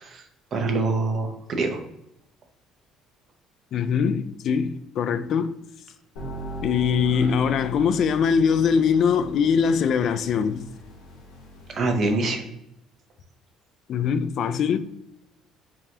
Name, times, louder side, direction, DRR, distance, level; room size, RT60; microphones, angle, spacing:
voice 1, 0.0-1.8 7.1-7.3 11.7-12.4, right 3 dB, 50° right, 0.8 m, -25 dB
voice 2, 3.7-5.5 6.6-10.6 13.9-14.8, left 6 dB, 60° left, 0.3 m, -22 dB
sound 1, 6.2-12.2, equal, 85° left, 1.2 m, -39 dB
4.8 x 2.5 x 2.7 m
supercardioid pair, 80°, 0 cm